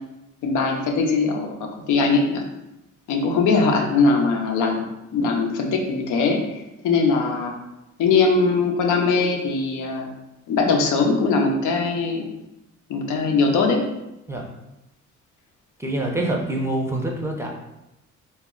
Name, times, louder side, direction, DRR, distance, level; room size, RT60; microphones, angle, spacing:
voice 1, 0.4-2.4 3.1-4.8 5.1-7.5 8.0-10.1 10.5-12.3 12.9-13.8, left 4 dB, 80° left, 2 dB, 0.6 m, -21 dB
voice 2, 15.8-17.5, right 1 dB, 10° right, -1 dB, 0.5 m, -25 dB
2.3 x 2.0 x 3.6 m, 0.92 s
cardioid pair, 90°, 30 cm